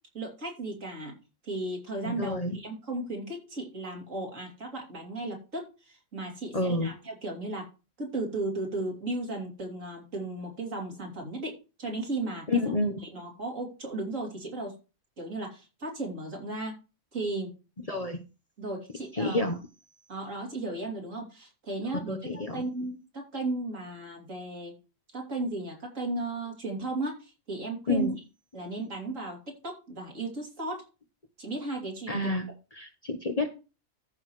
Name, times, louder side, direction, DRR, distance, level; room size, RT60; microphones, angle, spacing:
voice 1, 0.1-1.1 1.4-7.7 8.0-12.5 13.0-14.7 15.2-16.7 17.1-17.5 18.6-19.5 20.1-24.8 25.1-28.1 28.5-30.8 31.4-32.3, right 2 dB, 70° right, 0 dB, 3.3 m, -35 dB
voice 2, 2.1-2.6 6.5-6.9 12.5-13.0 17.9-18.2 19.2-19.5 22.1-22.6 27.9-28.1 32.1-32.5 32.8-33.5, left 2 dB, 30° left, 5 dB, 1.0 m, -29 dB
14.0 x 6.3 x 3.1 m, 0.31 s
omnidirectional pair, 1.4 m